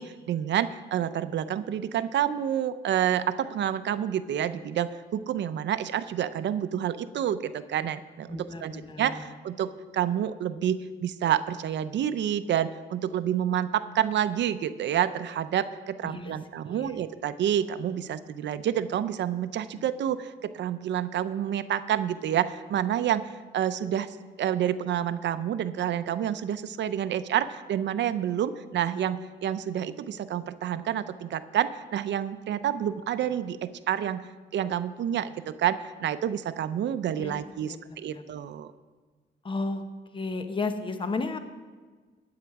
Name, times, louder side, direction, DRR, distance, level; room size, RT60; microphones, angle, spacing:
voice 1, 0.0-34.2 34.5-38.7, right 10 dB, 65° right, 12 dB, 0.6 m, -29 dB
voice 2, 8.3-9.3 16.0-16.4 16.7-17.0 37.2-38.2 39.4-39.8 40.1-41.4, left 3 dB, 25° left, 8 dB, 1.0 m, -34 dB
14.0 x 9.6 x 4.8 m, 1.4 s
cardioid pair, 90°, 20 cm